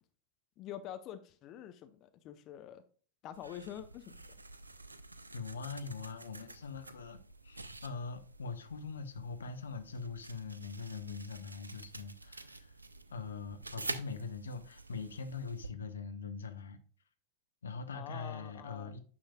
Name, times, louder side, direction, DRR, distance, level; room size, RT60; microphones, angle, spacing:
voice 1, 0.6-2.8 3.2-4.2 17.9-18.9, left 10 dB, 35° left, 0.6 m, -46 dB
sound 1, 3.3-15.7, right 2 dB, 80° right, 0.4 m, -48 dB
voice 2, 5.3-12.7 13.1-16.8 17.6-19.0, left 4 dB, 70° left, 0.7 m, -42 dB
9.4 x 6.3 x 2.3 m
figure-of-eight pair, 90°, 0 cm